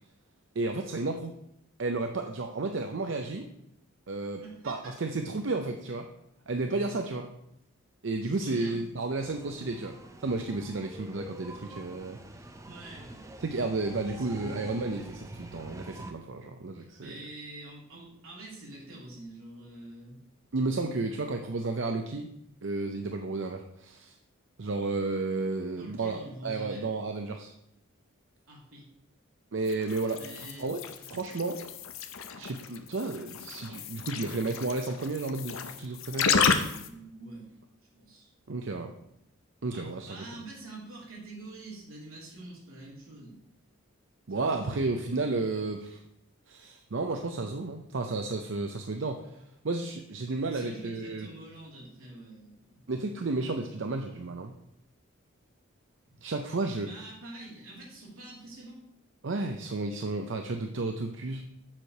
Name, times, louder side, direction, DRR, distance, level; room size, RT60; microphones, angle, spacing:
voice 1, 0.5-1.3 1.8-3.5 4.1-6.1 6.5-7.3 8.0-10.0 10.2-12.2 13.4-17.2 20.5-22.3 22.6-24.2 24.6-27.5 29.5-31.6 32.4-36.3 38.5-38.9 39.6-40.2 44.3-46.0 46.5-51.3 52.9-54.5 56.2-56.9 59.2-61.4, right 3 dB, 60° right, 5 dB, 0.6 m, -32 dB
voice 2, 4.4-4.9 8.2-8.8 12.6-13.3 14.1-14.7 16.8-20.1 25.8-26.8 28.5-28.9 30.2-30.7 36.8-37.5 37.9-38.3 39.7-43.4 44.3-45.3 50.5-52.8 56.1-56.2 56.8-58.8, right 2 dB, 80° right, -4 dB, 3.2 m, -46 dB
sound 1, 9.2-16.1, right 1 dB, 15° right, 0.5 m, -46 dB
sound 2, 29.6-36.9, left 6 dB, 70° left, 0.7 m, -32 dB
7.4 x 4.8 x 6.5 m, 0.79 s
head